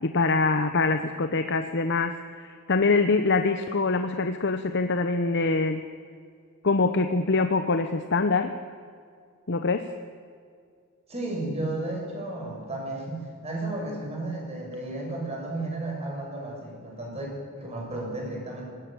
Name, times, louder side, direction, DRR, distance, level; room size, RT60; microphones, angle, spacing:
voice 1, 0.0-2.1 2.4-5.8 6.6-8.5 9.5-9.9, left 3 dB, 55° left, 8 dB, 0.9 m, -24 dB
voice 2, 11.1-17.3 17.6-18.7, right 2 dB, 30° right, -1 dB, 6.3 m, -33 dB
21.0 x 17.5 x 9.0 m, 2.2 s
head